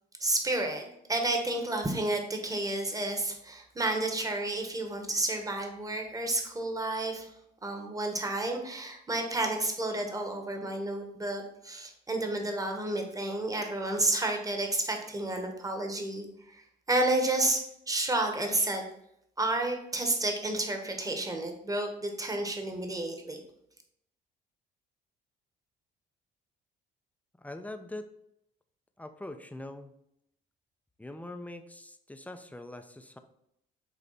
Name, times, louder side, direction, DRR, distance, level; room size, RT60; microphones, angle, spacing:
voice 1, 0.2-7.3 7.6-18.8 19.4-23.4, right 2 dB, 20° right, 3 dB, 1.4 m, -31 dB
voice 2, 27.4-28.1 29.0-29.9 31.0-33.2, left 1 dB, 10° left, 7 dB, 0.6 m, -43 dB
8.2 x 3.2 x 4.2 m, 0.78 s
supercardioid pair, 80°, 19 cm